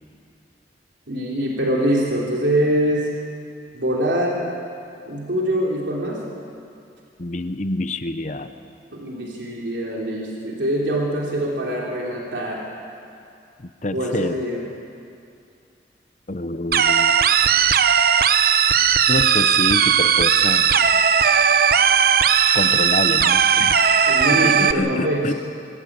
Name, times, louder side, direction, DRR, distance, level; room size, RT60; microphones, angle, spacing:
voice 1, 1.1-3.1 3.7-4.5 5.0-6.2 8.9-12.6 13.9-14.6 23.8-25.2, right 1 dB, 80° right, -3 dB, 3.4 m, -24 dB
voice 2, 7.2-8.5 13.6-14.4 16.3-17.2 19.1-20.7 22.5-25.3, left 2 dB, 40° left, 10 dB, 0.8 m, -27 dB
sound 1, 16.7-24.7, right 7 dB, 55° right, 0.7 m, -17 dB
25.0 x 15.0 x 8.7 m, 2.4 s
head